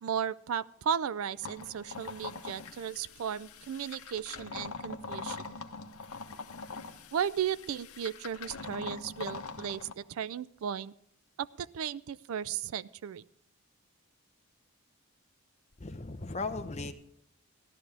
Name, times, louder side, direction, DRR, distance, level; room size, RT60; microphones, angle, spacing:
voice 1, 0.0-5.6 7.1-10.9 11.4-13.2, right 8 dB, 75° right, 0.4 m, -35 dB
sound 1, 1.4-9.9, left 4 dB, 85° left, 0.9 m, -43 dB
voice 2, 15.8-16.9, left 3 dB, 30° left, 0.7 m, -36 dB
14.5 x 12.0 x 3.3 m
head